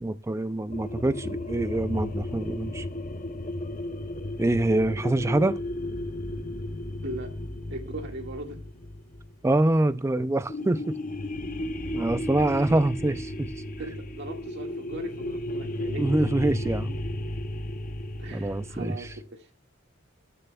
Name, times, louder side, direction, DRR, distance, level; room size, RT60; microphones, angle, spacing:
voice 1, 0.0-2.8 4.4-5.6 9.4-10.9 11.9-13.5 16.0-17.0 18.3-19.1, right 2 dB, 15° right, 0.3 m, -25 dB
sound 1, 0.7-9.8 10.5-19.2, left 1 dB, 40° left, 0.7 m, -34 dB
voice 2, 7.7-8.6 12.5-12.7 13.8-16.0 18.2-19.5, right 1 dB, 55° right, 1.8 m, -39 dB
20.0 x 6.7 x 2.3 m
head